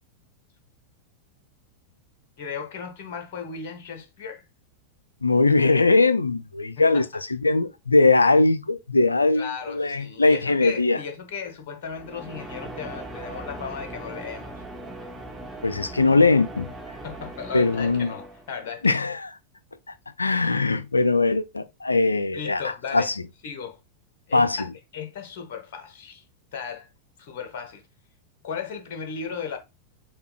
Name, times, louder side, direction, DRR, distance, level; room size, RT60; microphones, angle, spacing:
voice 1, 2.4-4.4 6.8-7.0 9.3-14.6 17.0-19.0 22.3-23.1 23.4-23.8 24.3-24.6 24.9-26.2 26.5-26.9 27.2-27.8 28.4-29.6, left 6 dB, 50° left, 0.9 m, -36 dB
voice 2, 5.2-11.0 15.6-16.7 17.5-18.1 18.8-19.3 20.2-22.6 22.9-23.1 24.3-24.7, left 3 dB, 80° left, 0.3 m, -20 dB
sound 1, 11.8-18.7, right 1 dB, 10° right, 0.9 m, -39 dB
6.7 x 2.2 x 2.2 m
figure-of-eight pair, 90°, 0 cm